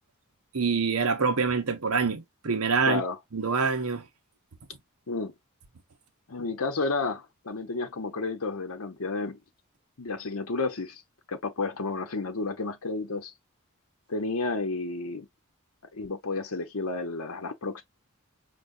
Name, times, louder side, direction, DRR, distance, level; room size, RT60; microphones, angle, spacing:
voice 1, 0.5-3.0 3.3-4.0, right 5 dB, 85° right, 1.0 m, -25 dB
voice 2, 2.9-3.2 5.1-5.3 6.3-9.4 10.0-11.0 11.3-13.3 14.1-15.3 15.9-17.8, left 3 dB, 75° left, 0.9 m, -31 dB
5.1 x 2.8 x 2.6 m
head